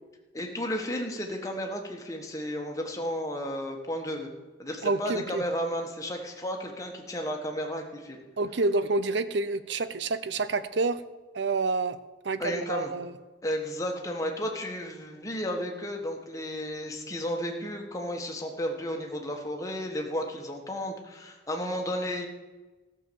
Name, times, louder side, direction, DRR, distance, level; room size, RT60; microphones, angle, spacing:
voice 1, 0.3-4.3 4.6-8.2 12.4-12.9 13.4-22.3, equal, 15° left, 2 dB, 1.4 m, -33 dB
voice 2, 4.8-5.4 8.4-11.0 11.3-12.0 12.2-13.1, right 3 dB, 60° right, 13 dB, 0.6 m, -28 dB
14.0 x 6.8 x 6.9 m, 1.2 s
head